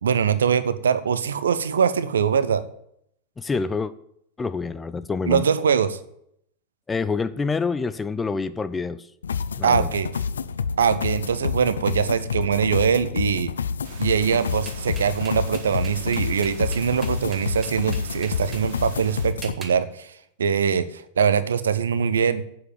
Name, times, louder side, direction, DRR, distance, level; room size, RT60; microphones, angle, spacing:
voice 1, 0.0-2.6 5.3-6.0 9.6-10.1 10.8-13.5 14.0-20.1 20.4-22.4, right 7 dB, 65° right, 13 dB, 0.8 m, -22 dB
voice 2, 3.4-3.9 4.4-5.5 6.9-9.1 9.6-9.9, left 4 dB, 15° left, 14 dB, 0.5 m, -27 dB
sound 1, 9.2-19.5, left 6 dB, 70° left, 0.5 m, -28 dB
sound 2, 13.8-19.3, right 4 dB, 50° right, 2.1 m, -43 dB
Sense dengeln, 14.6-18.6 19.4-19.8, right 4 dB, 20° right, 1.5 m, -42 dB
8.3 x 7.5 x 8.9 m, 0.71 s
figure-of-eight pair, 90°, 0 cm